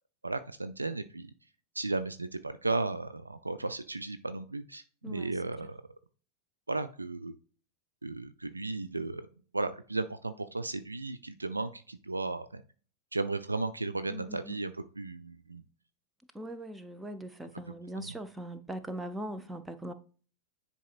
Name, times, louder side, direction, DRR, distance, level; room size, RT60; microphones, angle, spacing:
voice 1, 0.2-1.3 1.8-5.8 6.7-7.3 8.0-9.3 9.5-12.6 13.1-15.6 17.7-18.1, right 3 dB, 80° right, 0.4 m, -35 dB
voice 2, 14.1-14.5 16.3-19.9, right 1 dB, 10° right, 0.6 m, -41 dB
10.0 x 4.1 x 2.4 m
figure-of-eight pair, 90°, 0 cm